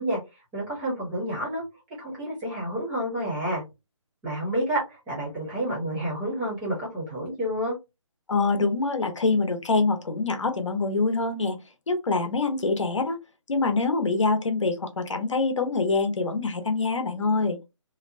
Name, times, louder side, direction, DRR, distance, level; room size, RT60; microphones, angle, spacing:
voice 1, 0.0-1.6 2.0-3.6 4.2-7.8, right 1 dB, 10° right, 0.7 m, -29 dB
voice 2, 8.3-11.6 11.9-13.2 13.5-17.6, left 3 dB, 65° left, 0.9 m, -25 dB
2.8 x 2.1 x 2.5 m
figure-of-eight pair, 160°, 17 cm